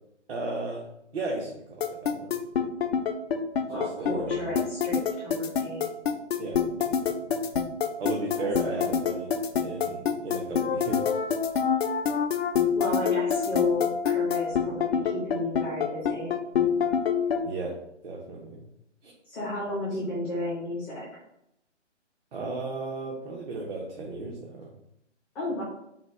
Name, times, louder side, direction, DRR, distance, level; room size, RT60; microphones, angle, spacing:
voice 1, 0.3-0.9 1.1-2.4 3.7-4.6 6.4-6.9 7.2-7.3 8.0-11.2 17.4-17.7 18.0-18.7 19.0-19.1 22.3-24.7, right 2 dB, 55° right, 0 dB, 0.8 m, -35 dB
sound 1, 1.8-17.4, left 7 dB, 60° left, 0.6 m, -25 dB
voice 2, 3.7-5.9 8.7-8.9 12.7-16.3 19.2-21.0 25.3-25.6, left 1 dB, 5° left, -8 dB, 0.5 m, -33 dB
4.0 x 2.2 x 4.5 m, 0.80 s
figure-of-eight pair, 145°, 36 cm